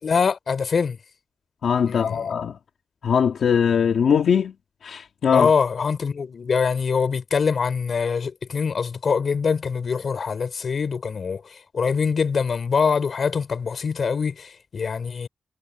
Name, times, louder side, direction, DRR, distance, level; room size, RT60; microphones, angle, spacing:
voice 1, 0.0-1.0 1.9-2.3 5.3-15.3, left 5 dB, 55° left, 5.1 m, -24 dB
voice 2, 1.6-2.6 3.0-4.5 4.8-5.5, left 7 dB, 85° left, 1.8 m, -21 dB
wide cardioid pair, 150°, 0 cm